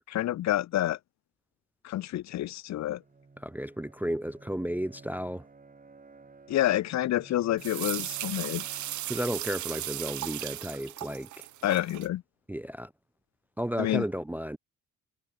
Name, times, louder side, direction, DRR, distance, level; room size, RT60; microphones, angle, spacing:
voice 1, 0.1-1.0 1.8-3.0 6.5-8.7 11.6-12.2 13.8-14.0, left 13 dB, 60° left, 0.6 m, -28 dB
Bowed string instrument, 2.7-10.5, right 4 dB, 25° right, 3.7 m, -55 dB
voice 2, 3.4-5.5 9.1-11.5 12.5-12.9 13.6-14.6, equal, 5° right, 0.4 m, -33 dB
sound 1, 7.6-12.1, right 14 dB, 65° right, 0.9 m, -36 dB
cardioid pair, 90°, 31 cm